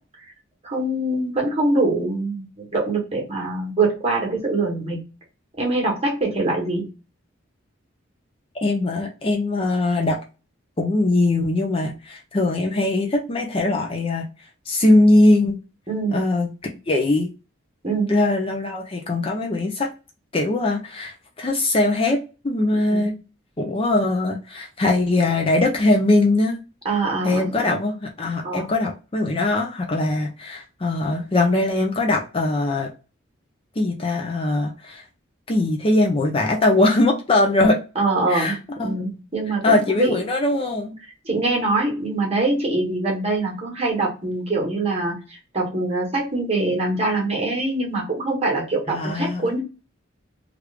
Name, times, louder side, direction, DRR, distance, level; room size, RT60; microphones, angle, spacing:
voice 1, 0.6-2.5 2.7-5.0 5.6-6.9 9.6-9.8 15.9-16.2 17.8-18.1 22.9-23.0 26.8-27.8 28.4-28.7 37.9-40.2 41.2-45.1 45.5-49.6, right 2 dB, 30° right, -1 dB, 1.2 m, -23 dB
voice 2, 8.6-10.2 10.8-14.3 14.7-15.6 16.1-16.5 16.9-17.3 18.1-19.9 20.3-23.1 23.6-26.6 27.2-32.9 33.8-35.0 35.5-37.8 38.3-39.0 39.6-41.0 48.9-49.5, left 2 dB, 30° left, 1 dB, 0.5 m, -21 dB
3.1 x 2.5 x 3.3 m, 0.31 s
head